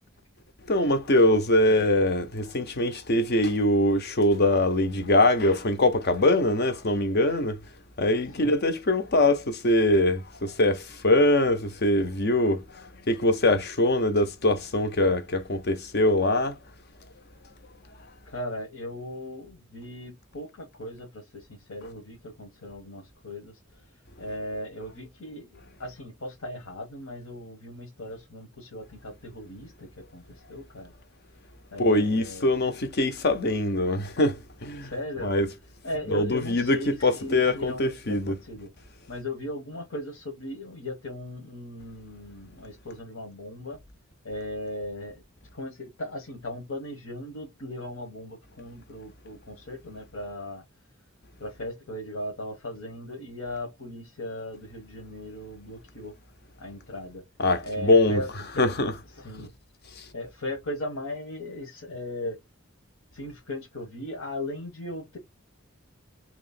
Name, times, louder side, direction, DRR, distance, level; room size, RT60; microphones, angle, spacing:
voice 1, 0.7-7.6 8.0-16.6 31.8-34.9 35.2-35.5 36.1-38.4 57.4-58.2 58.6-58.9 60.0-60.1, left 1 dB, 50° left, 0.8 m, -23 dB
voice 2, 18.2-23.5 24.2-30.9 31.7-32.5 34.8-35.3 35.8-38.7 39.1-43.8 44.2-45.2 45.5-50.6 51.4-56.1 56.6-57.2 57.6-58.3 58.5-58.7 59.2-59.5 60.1-62.4 63.1-65.2, left 1 dB, 75° left, 1.3 m, -37 dB
3.0 x 3.0 x 4.2 m
head